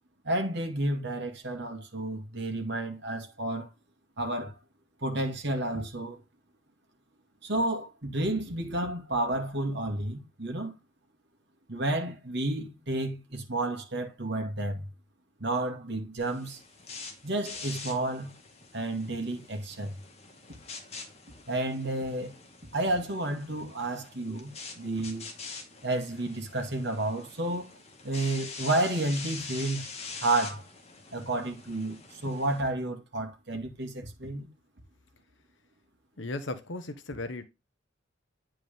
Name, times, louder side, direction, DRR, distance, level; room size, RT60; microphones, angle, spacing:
voice 1, 0.2-3.7 4.2-4.5 5.0-6.2 7.4-10.7 11.7-14.9 15.4-16.6 17.2-18.3 18.7-20.0 21.5-22.3 22.7-25.3 25.8-27.7 28.0-29.8 30.2-30.6 31.1-34.5, right 2 dB, 60° right, 2.3 m, -31 dB
sound 1, 16.2-32.6, left 4 dB, 35° left, 2.1 m, -45 dB
voice 2, 36.2-37.4, left 2 dB, 70° left, 1.0 m, -36 dB
9.4 x 4.8 x 3.5 m
head